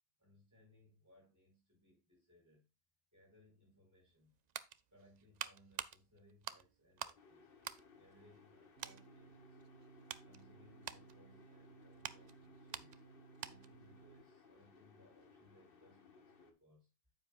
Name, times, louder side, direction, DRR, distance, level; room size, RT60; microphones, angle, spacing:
voice 1, 0.2-2.7 3.1-4.4 4.9-7.5 7.9-9.6 10.2-13.0 13.4-16.9, left 1 dB, 15° right, 4.8 m, -67 dB
sound 1, 4.1-7.2 7.6-8.5 8.8-9.1 9.6-13.8 14.1-14.3, right 8 dB, 55° right, 0.5 m, -48 dB
sound 2, 7.1-16.5, left 4 dB, 60° left, 1.3 m, -64 dB
sound 3, 8.8-14.2, right 6 dB, 70° right, 1.1 m, -61 dB
9.2 x 7.9 x 2.4 m
omnidirectional pair, 1.1 m